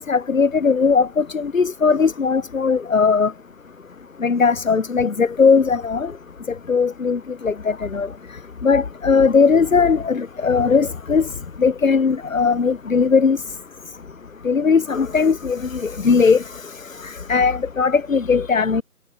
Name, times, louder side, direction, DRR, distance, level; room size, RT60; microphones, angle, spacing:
voice 1, 0.0-3.3 4.2-6.1 6.7-8.1 8.6-11.3 11.6-13.4 14.4-16.4 17.0-18.8, left 5 dB, 60° left, 0.6 m, -18 dB
figure-of-eight pair, 165°, 45 cm